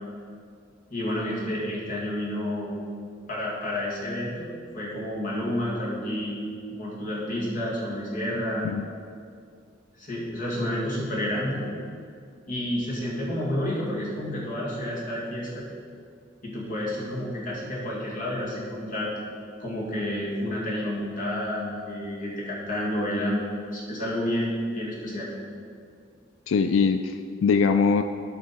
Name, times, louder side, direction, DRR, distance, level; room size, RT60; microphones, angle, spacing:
voice 1, 0.9-2.7 3.3-4.5 4.7-6.4 6.7-8.7 10.0-11.6 12.5-15.6 16.4-19.1 19.6-23.4 23.7-25.3, left 1 dB, 45° left, -5 dB, 2.2 m, -30 dB
voice 2, 26.5-28.0, left 5 dB, 85° left, 9 dB, 0.3 m, -22 dB
12.0 x 5.4 x 4.4 m, 2.3 s
head